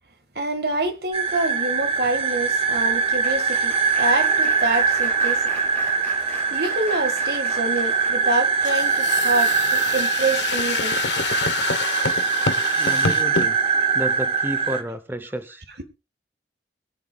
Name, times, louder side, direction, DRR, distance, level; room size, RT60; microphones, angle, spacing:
voice 1, 0.4-5.6 6.5-11.0 11.6-11.7, right 2 dB, 60° right, 1.9 m, -26 dB
sound 1, 1.1-14.8, right 5 dB, 35° right, 1.4 m, -22 dB
Applause, 1.3-9.6 10.2-10.5 10.8-10.9, left 3 dB, 10° left, 4.7 m, -41 dB
sound 2, 8.6-13.5, left 5 dB, 85° left, 1.0 m, -27 dB
voice 2, 12.7-13.6 13.9-15.6, equal, 10° right, 0.8 m, -31 dB
22.5 x 10.0 x 2.4 m
head